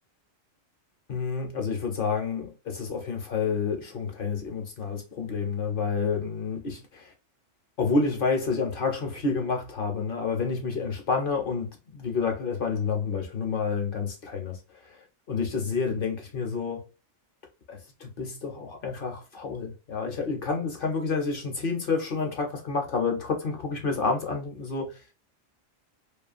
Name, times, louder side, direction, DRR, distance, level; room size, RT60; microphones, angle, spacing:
voice 1, 1.1-7.1 7.8-16.9 17.7-25.0, left 4 dB, 55° left, 0.7 m, -29 dB
2.7 x 2.4 x 2.4 m
omnidirectional pair, 1.3 m